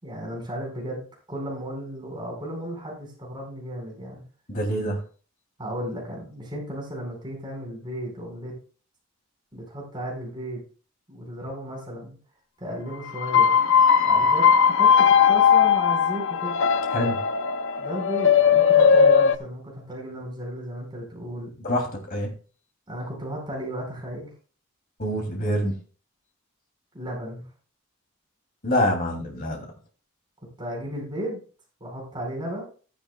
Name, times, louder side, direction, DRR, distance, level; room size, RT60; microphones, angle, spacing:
voice 1, 0.0-4.2 5.6-8.5 9.5-10.6 11.1-12.2 12.6-13.5 14.1-16.6 17.8-21.5 22.9-24.3 26.9-27.4 30.6-31.4 31.8-32.6, right 1 dB, 20° right, -1 dB, 4.7 m, -34 dB
voice 2, 4.5-5.0 16.9-17.3 21.6-22.3 25.0-25.8 28.6-29.7, equal, 40° left, 1 dB, 2.7 m, -26 dB
sound 1, 13.2-19.4, left 7 dB, 60° left, 0.6 m, -18 dB
13.5 x 10.5 x 2.3 m, 0.38 s
head